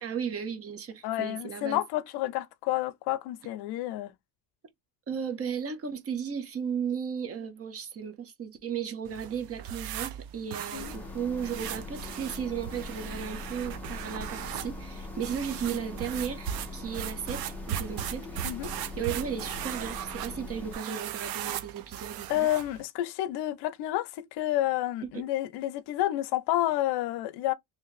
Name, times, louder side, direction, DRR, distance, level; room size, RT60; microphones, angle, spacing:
voice 1, 0.0-1.8 5.1-18.5 19.0-22.5 25.1-25.2, right 7 dB, 35° right, 1.0 m, -35 dB
voice 2, 1.0-4.1 10.7-11.0 18.4-18.7 22.3-27.5, left 14 dB, 80° left, 0.6 m, -30 dB
sound 1, 9.0-22.8, right 11 dB, 65° right, 0.7 m, -38 dB
sound 2, 10.7-20.8, left 2 dB, 5° left, 0.5 m, -41 dB
3.2 x 2.9 x 3.1 m
cardioid pair, 140°, 39 cm